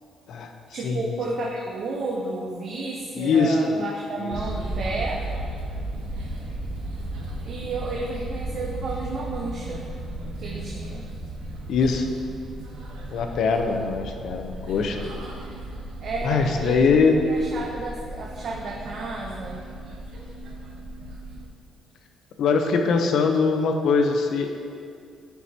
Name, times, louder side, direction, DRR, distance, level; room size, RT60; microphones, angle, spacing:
voice 1, 0.7-5.2 7.4-9.9 10.4-11.1 16.0-16.9 17.2-19.6, right 2 dB, 50° right, -2 dB, 0.6 m, -32 dB
voice 2, 3.2-3.9 4.2-4.4 11.7-12.1 13.1-15.0 16.2-17.2 22.4-24.5, left 4 dB, 65° left, 5 dB, 0.6 m, -22 dB
sound 1, 4.3-21.5, right 1 dB, 85° right, 1.0 m, -35 dB
10.0 x 4.7 x 2.8 m, 2.3 s
cardioid pair, 145°, 0 cm